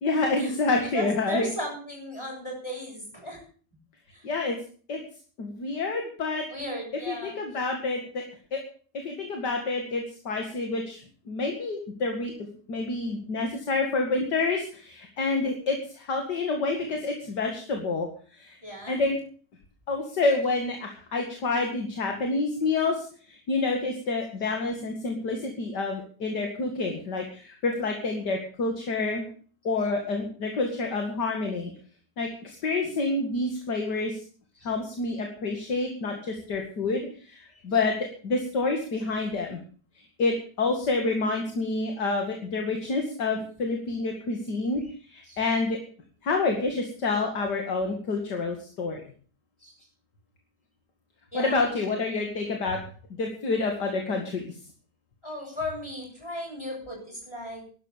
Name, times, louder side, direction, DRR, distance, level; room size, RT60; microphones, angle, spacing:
voice 1, 0.0-1.5 4.2-4.6 4.9-5.0 5.4-6.5 7.1-8.2 8.5-8.6 8.9-11.0 11.3-12.3 12.7-18.1 18.3-18.6 18.9-19.2 19.9-29.2 29.6-31.7 32.2-34.2 34.6-37.9 38.2-39.6 40.2-44.8 45.1-45.8 46.2-49.0 51.3-52.8 53.2-54.5, left 3 dB, 75° left, 3 dB, 2.8 m, -28 dB
voice 2, 0.9-3.4 4.1-4.3 6.5-7.4 18.6-19.0 34.6-34.7 37.5-37.6 45.2-45.4 49.6-49.8 51.3-51.7 55.2-57.6, left 1 dB, 15° left, -1 dB, 7.3 m, -36 dB
12.5 x 12.0 x 6.9 m, 0.43 s
omnidirectional pair, 1.8 m